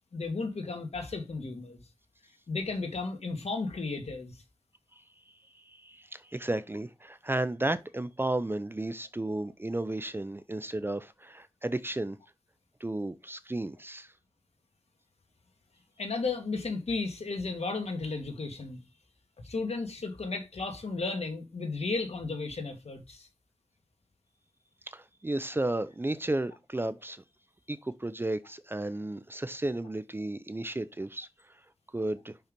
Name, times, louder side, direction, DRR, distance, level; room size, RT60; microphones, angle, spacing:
voice 1, 0.1-1.8 2.5-4.4 16.0-18.8 19.4-23.3, left 3 dB, 65° left, 1.9 m, -34 dB
voice 2, 5.5-12.2 12.8-14.1 24.9-27.2 27.7-31.6 31.9-32.4, right 2 dB, 20° right, 0.5 m, -33 dB
5.7 x 5.5 x 5.2 m
wide cardioid pair, 95°, 12 cm